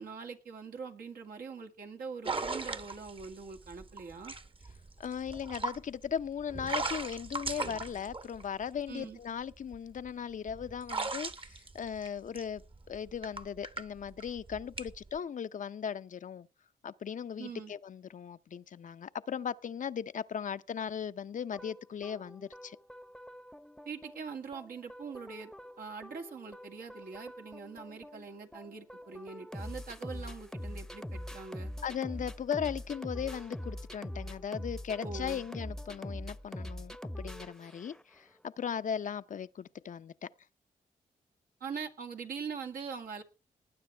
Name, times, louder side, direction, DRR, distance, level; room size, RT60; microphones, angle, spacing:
voice 1, 0.0-4.3 8.9-9.2 17.4-17.7 23.9-25.5 25.8-31.7 35.0-35.4 41.6-43.2, right 5 dB, 75° right, 2.1 m, -43 dB
sound 1, 2.3-8.9 9.5-15.2, right 3 dB, 35° right, 1.2 m, -38 dB
voice 2, 5.0-16.5 16.8-22.8 31.8-40.3, left 7 dB, 60° left, 0.6 m, -38 dB
sound 2, 21.5-38.2, left 1 dB, 5° left, 0.8 m, -44 dB
19.5 x 9.3 x 3.4 m
cardioid pair, 55°, 15 cm